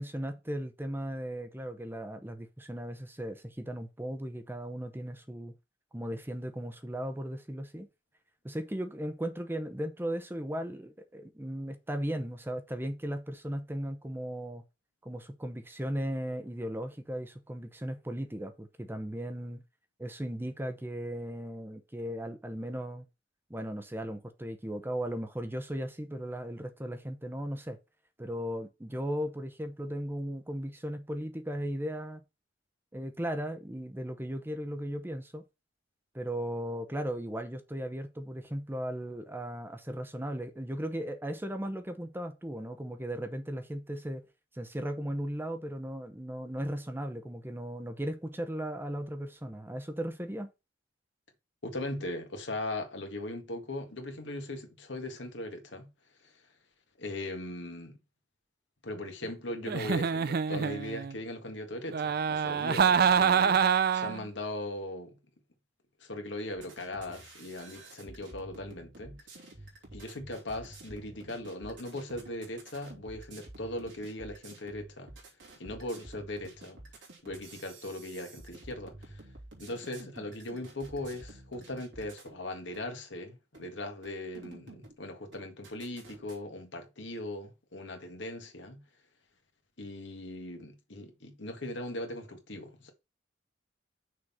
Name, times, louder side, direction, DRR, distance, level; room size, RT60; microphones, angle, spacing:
voice 1, 0.0-5.5 5.9-7.9 8.4-14.6 15.0-19.6 20.0-23.0 23.5-27.8 28.2-32.2 32.9-35.4 36.1-44.2 44.5-50.5, equal, 10° right, 0.8 m, -37 dB
voice 2, 51.6-55.9 56.2-56.3 57.0-58.0 58.8-63.6 63.9-65.2 66.0-69.2 69.9-75.1 75.6-76.8 77.2-79.2 79.6-88.8 89.8-92.9, left 1 dB, 75° left, 1.7 m, -39 dB
Giggle, 59.6-61.1 61.9-64.2, right 7 dB, 55° right, 0.4 m, -26 dB
sound 1, 66.5-82.4 82.7-82.9 83.5-83.7 84.0-85.0 85.3-86.4, right 2 dB, 85° right, 2.9 m, -50 dB
6.3 x 3.8 x 5.8 m
head